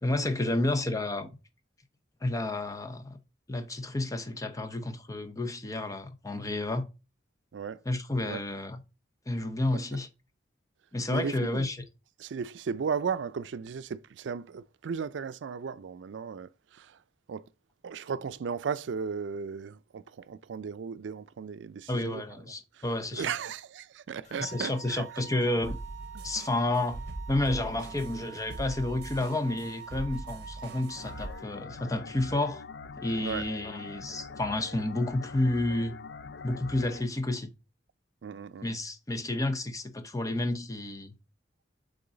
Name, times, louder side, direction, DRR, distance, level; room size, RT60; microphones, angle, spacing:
voice 1, 0.0-1.3 2.2-3.2 3.5-6.9 7.9-8.8 9.3-10.1 10.9-11.8 21.9-23.3 24.4-25.8 26.2-27.0 27.3-32.6 33.0-36.0 36.4-37.5 38.6-41.2, left 2 dB, 20° left, 0.7 m, -30 dB
voice 2, 11.1-11.6 12.2-17.0 17.3-17.5 17.8-22.2 22.8-22.9 23.1-25.0 33.2-33.5 38.2-38.7, right 6 dB, 90° right, 0.4 m, -35 dB
sound 1, 24.2-31.4, right 9 dB, 40° left, 2.2 m, -46 dB
sound 2, 25.6-31.3, right 1 dB, 65° right, 1.0 m, -41 dB
sound 3, 31.0-37.0, left 4 dB, 65° left, 0.5 m, -44 dB
7.1 x 3.8 x 3.8 m
head